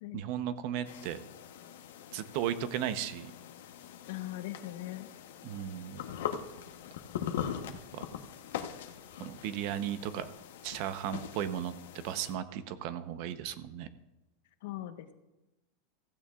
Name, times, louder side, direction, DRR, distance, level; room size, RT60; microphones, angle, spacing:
voice 1, 0.1-1.2 2.1-3.3 5.4-6.0 7.9-8.1 9.2-10.3 10.6-13.9, right 10 dB, 45° right, 12 dB, 0.8 m, -35 dB
sound 1, 0.8-12.3, left 9 dB, 90° left, 1.1 m, -42 dB
voice 2, 4.1-5.1 14.6-15.1, left 15 dB, 65° left, 8 dB, 1.1 m, -40 dB
15.5 x 15.5 x 2.4 m, 1.0 s
supercardioid pair, 165°, 0 cm